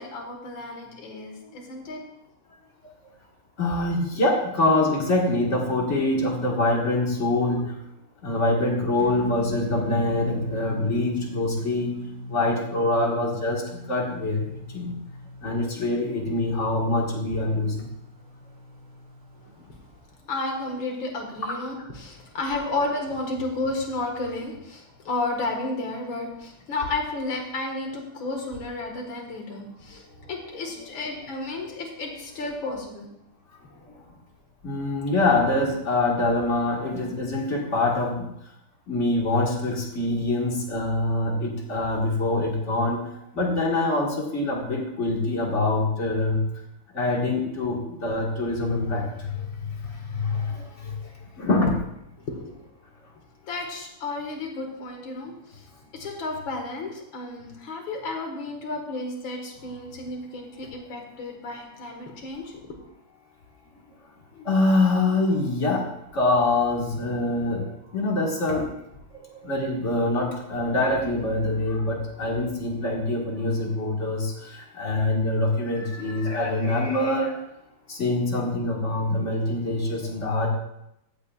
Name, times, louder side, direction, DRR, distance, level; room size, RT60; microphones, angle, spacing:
voice 1, 0.0-2.0 19.4-19.7 20.3-33.1 33.7-33.8 52.2-52.5 53.4-55.7 55.9-62.7, left 2 dB, 65° left, 2 dB, 2.4 m, -32 dB
voice 2, 3.6-7.7 8.2-11.9 12.3-13.6 13.9-14.5 14.7-14.9 15.4-17.9 21.4-21.5 34.6-38.3 38.9-43.0 43.3-46.4 47.0-49.0 50.2-50.5 51.4-51.8 64.5-65.8 66.1-67.6 67.9-68.6 69.4-74.3 74.8-77.3 77.9-80.5, left 2 dB, 35° left, -1 dB, 1.9 m, -24 dB
sound 1, 9.0-19.5, left 1 dB, 45° right, 1.9 m, -38 dB
15.0 x 8.4 x 2.4 m, 0.82 s
omnidirectional pair, 2.4 m